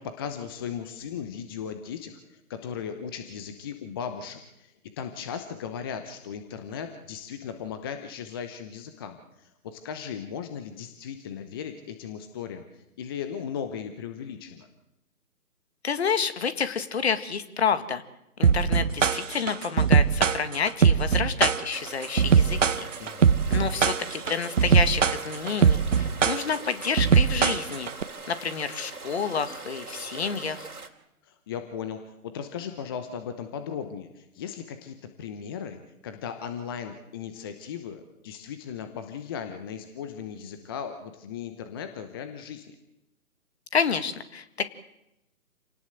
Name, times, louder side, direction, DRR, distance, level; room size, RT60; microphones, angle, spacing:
voice 1, 0.0-14.7 23.0-23.4 31.2-42.8, left 7 dB, 15° left, 8 dB, 0.9 m, -37 dB
voice 2, 15.8-18.0 18.4-22.9 23.5-27.9 28.3-30.7 43.7-44.7, left 6 dB, 45° left, 11 dB, 2.0 m, -29 dB
sound 1, 18.4-28.0, right 7 dB, 55° right, 1.1 m, -21 dB
sound 2, 21.7-30.9, right 3 dB, 80° right, 3.3 m, -42 dB
28.0 x 18.5 x 7.9 m, 0.90 s
figure-of-eight pair, 145°, 44 cm